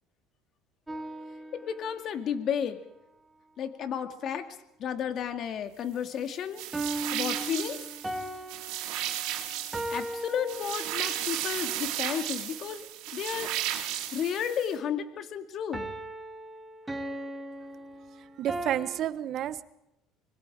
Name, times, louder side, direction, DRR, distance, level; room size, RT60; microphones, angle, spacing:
sound 1, 0.9-2.2 6.7-11.3 15.7-19.0, right 1 dB, 10° right, 2.3 m, -38 dB
voice 1, 1.5-2.8 3.6-4.4 4.8-6.6 7.1-7.8 9.9-13.5 14.1-15.9, left 8 dB, 50° left, 8 dB, 2.3 m, -32 dB
sound 2, 6.6-14.7, right 12 dB, 75° right, 3.4 m, -34 dB
voice 2, 18.4-19.7, right 11 dB, 55° right, 14 dB, 1.2 m, -30 dB
25.5 x 22.0 x 5.0 m, 0.83 s
supercardioid pair, 105°, 0 cm